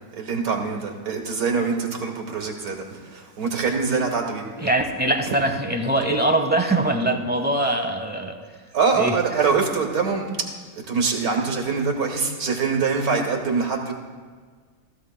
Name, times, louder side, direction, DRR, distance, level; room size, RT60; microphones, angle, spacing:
voice 1, 0.1-4.7 8.7-13.9, right 5 dB, 80° right, 1 dB, 1.9 m, -24 dB
voice 2, 4.6-8.4 9.0-9.1, right 1 dB, 10° right, 4 dB, 0.7 m, -22 dB
16.0 x 14.5 x 2.2 m, 1.5 s
omnidirectional pair, 1.5 m